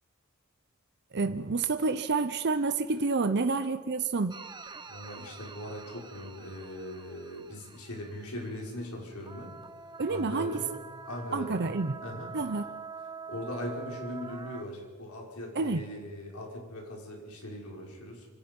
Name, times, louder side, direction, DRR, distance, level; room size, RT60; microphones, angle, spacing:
voice 1, 1.1-4.4 10.0-10.6 11.3-12.0 12.3-12.7 15.5-15.8, right 3 dB, 50° right, 9 dB, 0.7 m, -29 dB
sound 1, 4.3-8.9 9.2-14.6, right 5 dB, 20° right, 1.0 m, -46 dB
voice 2, 4.9-9.6 10.1-10.7 11.1-11.6 12.0-12.3 13.3-18.3, left 1 dB, 75° left, -1 dB, 5.4 m, -40 dB
26.0 x 26.0 x 5.4 m, 1.5 s
head